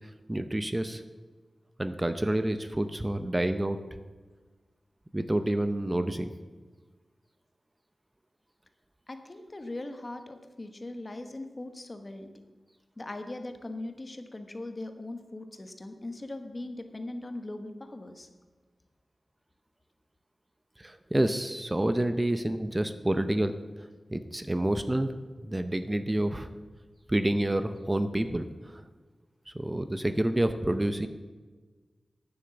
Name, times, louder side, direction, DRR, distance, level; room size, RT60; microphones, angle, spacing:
voice 1, 0.3-1.0 1.8-3.8 5.1-6.3 20.8-23.5 24.1-25.1 25.4-26.5 27.1-28.8 29.5-31.1, right 1 dB, 20° right, 9 dB, 0.7 m, -28 dB
voice 2, 9.1-12.3 13.0-18.3, left 2 dB, 40° left, 7 dB, 1.2 m, -40 dB
9.5 x 7.4 x 7.0 m, 1.4 s
cardioid pair, 60°, 0 cm